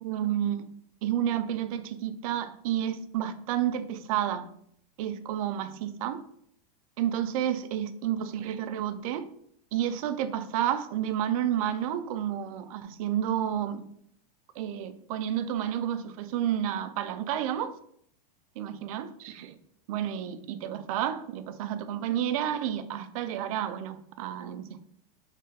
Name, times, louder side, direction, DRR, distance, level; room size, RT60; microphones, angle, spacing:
voice 1, 0.0-0.7 1.0-4.5 5.0-6.2 7.0-9.3 9.7-13.8 14.6-17.8 18.6-19.6 19.9-24.8, right 10 dB, 55° right, 0.4 m, -30 dB
3.3 x 2.7 x 3.7 m
supercardioid pair, 155°, 21 cm